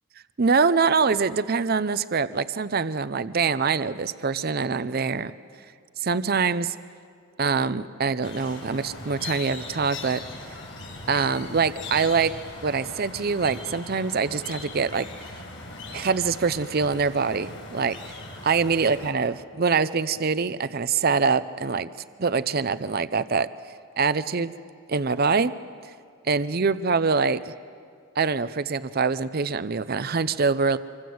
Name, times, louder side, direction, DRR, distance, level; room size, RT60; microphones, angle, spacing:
voice 1, 0.4-5.3 6.0-6.7 7.4-10.2 11.1-12.3 12.6-15.1 15.9-18.0 18.4-21.9 22.2-23.5 24.0-24.5 24.9-25.5 26.2-27.5 28.2-30.8, right 5 dB, 45° right, 14 dB, 0.6 m, -24 dB
sound 1, 8.2-19.1, left 3 dB, 65° left, 7.7 m, -40 dB
26.0 x 25.0 x 7.9 m, 2.3 s
head